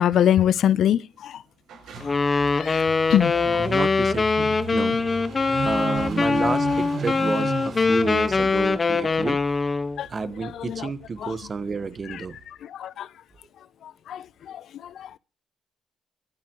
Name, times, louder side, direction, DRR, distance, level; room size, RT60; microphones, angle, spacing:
voice 1, 0.0-1.4 2.5-2.8 3.1-3.4 10.0-10.1 10.4-10.9 11.2-11.3 12.7-13.1 14.1-15.1, left 10 dB, 70° left, 0.6 m, -23 dB
sound 1, 1.1-9.3, right 5 dB, 80° right, 7.4 m, -50 dB
Car passing by / Idling, 1.8-12.5, right 5 dB, 60° right, 6.0 m, -37 dB
Wind instrument woodwind instrument, 2.0-10.0, left 4 dB, 30° left, 1.4 m, -23 dB
voice 2, 3.4-5.0 5.6-9.4 10.1-12.4, right 4 dB, 40° right, 1.4 m, -30 dB
25.0 x 10.5 x 3.1 m
cardioid pair, 90°, 0 cm